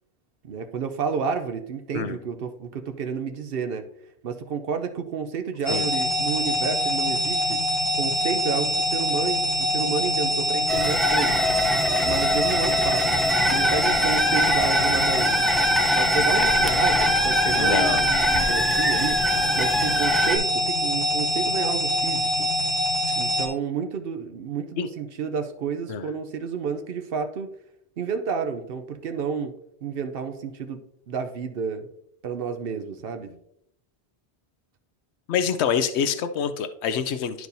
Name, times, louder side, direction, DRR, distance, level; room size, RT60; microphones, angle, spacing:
voice 1, 0.4-3.9 4.2-7.6 7.9-11.5 12.0-15.4 16.0-22.5 23.2-27.5 28.0-29.5 29.8-30.8 31.1-31.9 32.2-33.4, right 6 dB, 65° right, 7 dB, 0.8 m, -30 dB
sound 1, 5.7-23.5, equal, 55° left, 1.6 m, -24 dB
sound 2, 10.7-20.4, equal, ahead, 0.5 m, -24 dB
voice 2, 17.5-18.0 24.8-24.9 25.9-26.1 35.3-37.5, left 7 dB, 90° left, 11 dB, 0.9 m, -26 dB
11.5 x 4.7 x 2.7 m, 0.73 s
omnidirectional pair, 1.1 m